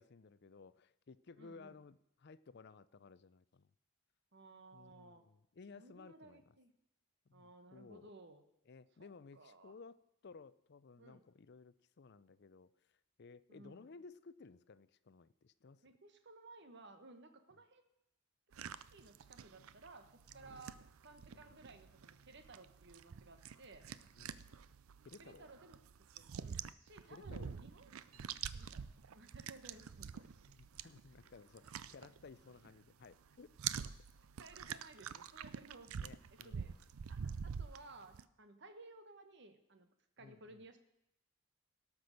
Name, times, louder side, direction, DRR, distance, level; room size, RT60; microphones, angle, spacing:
voice 1, 0.0-3.7 4.7-6.5 7.3-8.1 8.7-10.0 10.2-15.9 20.3-20.8 21.3-21.6 24.1-24.4 25.0-25.5 27.0-27.6 28.1-28.4 30.5-33.9 36.0-36.7 40.2-40.7, left 4 dB, 50° left, 16 dB, 0.5 m, -58 dB
voice 2, 1.4-1.8 4.3-5.2 5.7-6.7 7.3-8.4 9.0-9.7 11.0-11.2 13.5-13.9 15.8-17.8 18.5-23.9 25.2-25.8 26.1-27.9 28.5-28.8 29.1-30.3 34.4-36.0 36.3-36.7 37.1-39.9 40.2-40.8, right 2 dB, 55° right, 8 dB, 1.2 m, -58 dB
sound 1, 18.5-32.8 33.0-38.2, right 7 dB, 80° right, 0.5 m, -47 dB
17.5 x 6.1 x 6.5 m, 0.82 s
head